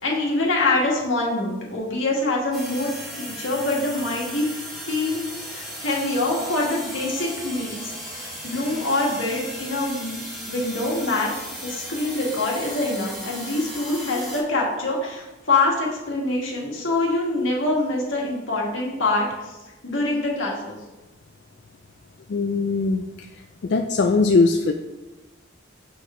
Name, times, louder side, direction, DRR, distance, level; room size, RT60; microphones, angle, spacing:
voice 1, 0.0-4.6 4.9-10.2 10.4-11.3 11.6-19.6 19.8-20.8, left 2 dB, 85° left, -2 dB, 1.8 m, -25 dB
sound 1, 2.5-14.4, equal, ahead, 1.9 m, -36 dB
voice 2, 22.3-23.0 23.6-24.7, left 3 dB, 60° left, 5 dB, 0.3 m, -20 dB
6.8 x 4.7 x 4.3 m, 1.1 s
head